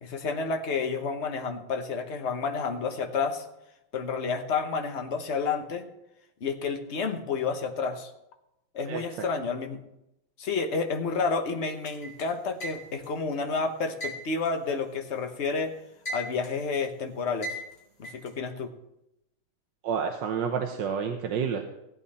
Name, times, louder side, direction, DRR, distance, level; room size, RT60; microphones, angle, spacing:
voice 1, 0.0-3.4 3.9-5.9 6.4-8.1 8.7-9.8 10.4-15.8 16.1-17.5 18.0-18.7, left 4 dB, 40° left, 5 dB, 1.1 m, -30 dB
sound 1, 11.9-13.2 14.0-15.4 15.7-16.7 17.4-18.3, equal, 25° left, 3.3 m, -37 dB
voice 2, 19.8-21.6, right 7 dB, 65° right, 3 dB, 1.5 m, -29 dB
16.0 x 8.9 x 4.2 m, 0.86 s
omnidirectional pair, 2.3 m